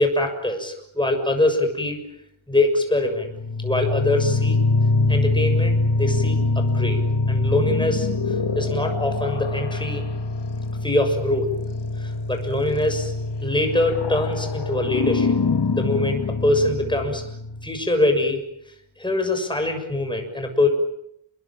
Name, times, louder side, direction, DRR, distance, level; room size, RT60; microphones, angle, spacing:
voice 1, 0.0-2.0 2.5-3.3 3.6-4.6 5.1-7.0 7.3-10.0 10.8-11.5 12.0-13.1 13.4-15.4 15.7-17.2 17.6-18.4 19.0-20.7, left 2 dB, 10° left, 5 dB, 6.7 m, -23 dB
sound 1, 3.1-17.7, left 3 dB, 60° left, 2.3 m, -24 dB
29.5 x 22.0 x 8.9 m, 0.75 s
wide cardioid pair, 160°, 46 cm